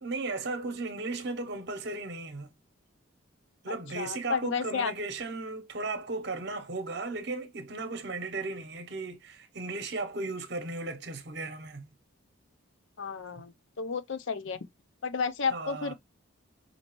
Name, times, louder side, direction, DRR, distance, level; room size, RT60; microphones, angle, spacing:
voice 1, 0.0-2.5 3.6-11.9 15.5-15.9, right 3 dB, 50° right, 0.8 m, -36 dB
voice 2, 3.7-4.9 13.0-14.6 15.0-15.9, left 5 dB, 65° left, 0.6 m, -32 dB
5.2 x 2.8 x 3.0 m
head